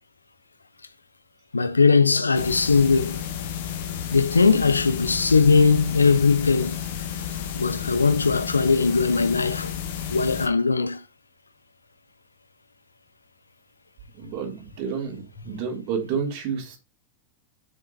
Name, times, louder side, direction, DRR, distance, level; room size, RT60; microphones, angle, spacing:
voice 1, 1.5-3.2 4.1-6.8 7.6-9.7 10.1-11.0, left 4 dB, 80° left, 0.8 m, -20 dB
sound 1, 2.3-10.5, left 9 dB, 55° left, 1.7 m, -32 dB
voice 2, 14.0-16.8, right 6 dB, 45° right, 3.7 m, -30 dB
7.2 x 6.5 x 4.3 m
figure-of-eight pair, 90°, 0 cm